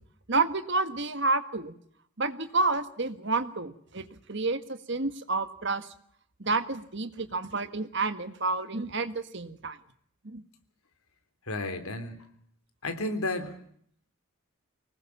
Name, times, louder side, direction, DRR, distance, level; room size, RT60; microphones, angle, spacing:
voice 1, 0.3-1.8 2.2-5.9 6.4-9.8 10.2-10.4, right 3 dB, 55° right, 10 dB, 1.6 m, -29 dB
voice 2, 11.5-12.3 12.8-13.6, left 2 dB, 85° left, 8 dB, 3.5 m, -32 dB
25.0 x 20.0 x 7.2 m, 0.65 s
head